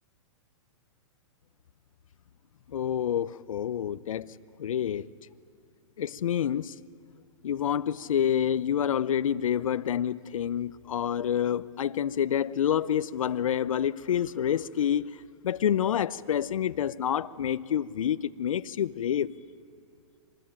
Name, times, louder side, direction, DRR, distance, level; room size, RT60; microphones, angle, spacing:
voice 1, 2.7-5.0 6.0-6.7 7.4-15.2 15.4-19.3, left 9 dB, 90° left, 0.7 m, -28 dB
25.0 x 20.0 x 8.8 m
hypercardioid pair, 175°, 17 cm